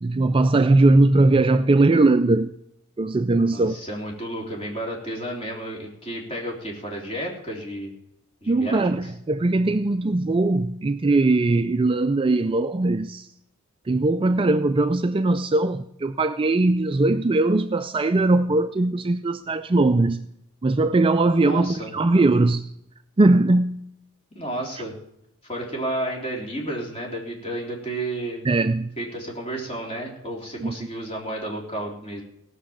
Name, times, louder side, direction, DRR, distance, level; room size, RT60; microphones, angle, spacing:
voice 1, 0.0-2.5 3.0-3.8 8.5-13.3 13.9-20.3 20.6-22.7 23.2-23.8 28.4-28.9 30.6-30.7, right 2 dB, 25° right, 0.4 m, -20 dB
voice 2, 3.5-7.9 8.4-9.1 21.4-21.9 24.3-24.9 25.5-28.5 29.0-32.2, right 1 dB, 25° left, 3.6 m, -32 dB
17.5 x 6.3 x 7.3 m
head